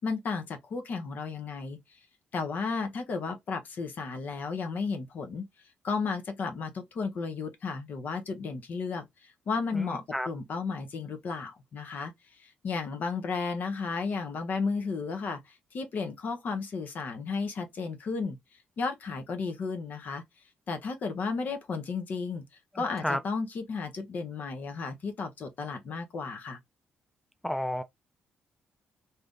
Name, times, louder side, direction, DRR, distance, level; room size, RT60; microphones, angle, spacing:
voice 1, 0.0-1.8 2.3-5.5 5.8-9.1 9.5-12.1 12.4-15.4 15.7-18.4 18.8-20.2 20.7-22.4 22.7-26.6, left 4 dB, 55° left, 0.7 m, -33 dB
voice 2, 9.7-10.3 22.7-23.2 27.4-27.8, equal, ahead, 0.3 m, -32 dB
2.7 x 2.5 x 3.4 m
cardioid pair, 100°, 4 cm